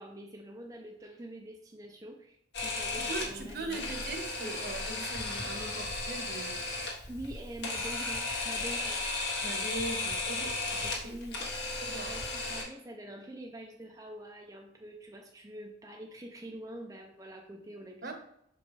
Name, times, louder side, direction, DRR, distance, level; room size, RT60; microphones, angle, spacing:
voice 1, 0.0-3.9 5.4-5.5 7.1-9.0 11.0-11.5 12.1-18.1, right 1 dB, 20° right, 0 dB, 0.5 m, -45 dB
Camera, 2.5-12.6, left 3 dB, 65° left, 1.5 m, -35 dB
voice 2, 2.7-6.6 9.4-11.2 11.8-12.2 18.0-18.1, right 2 dB, 55° right, 4 dB, 1.0 m, -40 dB
6.5 x 5.1 x 3.2 m, 0.76 s
head